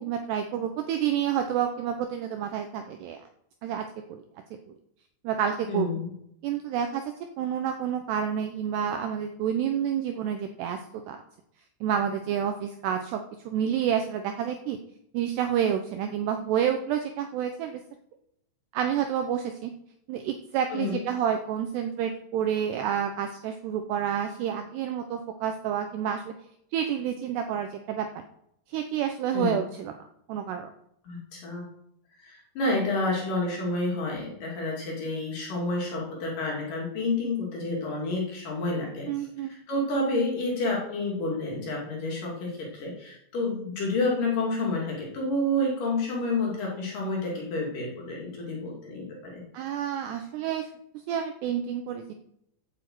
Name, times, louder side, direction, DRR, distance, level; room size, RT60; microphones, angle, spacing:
voice 1, 0.0-3.2 3.6-4.2 5.2-5.9 6.4-7.0 7.4-10.8 11.1-11.2 11.8-14.8 15.1-17.8 18.7-19.7 20.1-26.3 26.7-28.1 28.7-29.9 30.3-30.7 39.1-39.5 49.5-50.7 51.1-52.1, right 9 dB, 80° right, 6 dB, 2.5 m, -29 dB
voice 2, 5.7-6.1 20.7-21.0 29.3-29.6 31.0-31.7 32.2-39.1 39.7-49.4, left 2 dB, 50° left, -2 dB, 3.5 m, -29 dB
8.7 x 8.4 x 7.7 m, 0.76 s
omnidirectional pair, 5.6 m